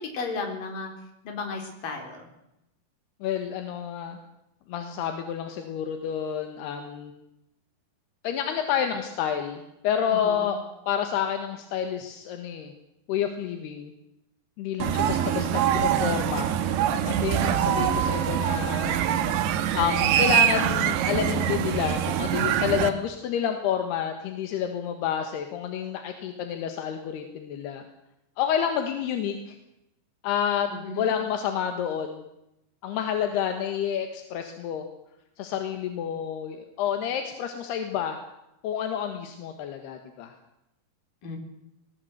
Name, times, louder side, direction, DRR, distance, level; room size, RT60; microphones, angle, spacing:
voice 1, 0.1-0.9 1.2-2.3 10.0-10.5 15.0-15.5 30.7-31.1 41.2-41.4, left 3 dB, 60° left, 3 dB, 5.6 m, -35 dB
voice 2, 3.2-4.2 4.7-7.1 8.2-10.6 10.9-12.7 13.1-13.9 14.6-16.5 17.1-19.0 19.7-27.8 28.4-29.6 30.2-30.7 31.0-32.2 32.8-34.9 35.4-38.2 38.6-40.3, left 9 dB, 80° left, 6 dB, 3.5 m, -29 dB
sound 1, 14.8-22.9, right 10 dB, 80° right, 3.3 m, -24 dB
20.5 x 19.5 x 8.0 m, 0.86 s
omnidirectional pair, 4.7 m